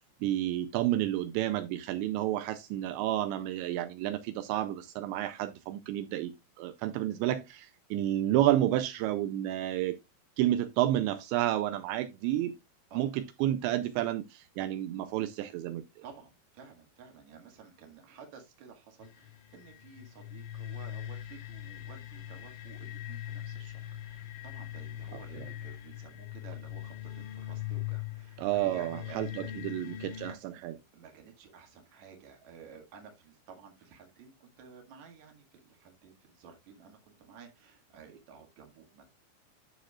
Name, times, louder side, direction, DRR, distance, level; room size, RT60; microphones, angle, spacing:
voice 1, 0.2-6.3 6.6-10.0 10.4-12.5 12.9-15.8 25.3-25.5 28.4-30.8, right 13 dB, 85° right, 2.8 m, -30 dB
voice 2, 16.0-29.6 30.9-39.1, right 6 dB, 50° right, 2.7 m, -53 dB
sound 1, 19.0-30.3, left 12 dB, 85° left, 3.7 m, -41 dB
11.5 x 6.7 x 2.4 m
omnidirectional pair, 5.2 m